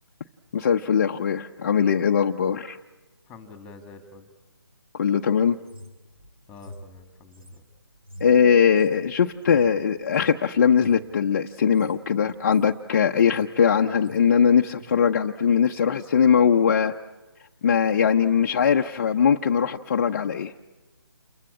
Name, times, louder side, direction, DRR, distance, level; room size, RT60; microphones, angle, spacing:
voice 1, 0.5-2.8 4.9-5.6 8.2-16.9 17.6-20.5, left 7 dB, 40° left, 3 dB, 0.8 m, -21 dB
voice 2, 3.3-4.3 6.5-7.6, left 4 dB, 10° left, 8 dB, 2.4 m, -46 dB
sound 1, 5.6-10.4 10.7-11.1 11.6-12.0 12.3-12.7 13.1-13.6 13.9-14.3 14.8-15.0, equal, 65° right, 5.0 m, -45 dB
28.5 x 22.5 x 8.6 m, 1.2 s
figure-of-eight pair, 150°, 13 cm